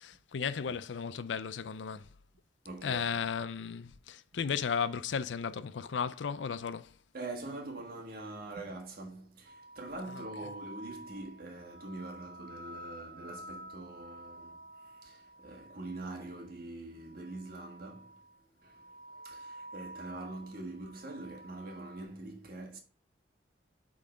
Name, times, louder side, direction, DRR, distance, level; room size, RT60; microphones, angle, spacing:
voice 1, 0.3-2.1 2.8-6.9, left 6 dB, 80° left, 0.5 m, -34 dB
voice 2, 2.6-3.3 7.1-18.2 18.6-22.8, right 2 dB, 55° right, 1.6 m, -44 dB
sound 1, 9.4-16.5 17.0-18.4 18.6-22.0, right 1 dB, 30° right, 2.0 m, -50 dB
8.4 x 3.8 x 3.8 m
head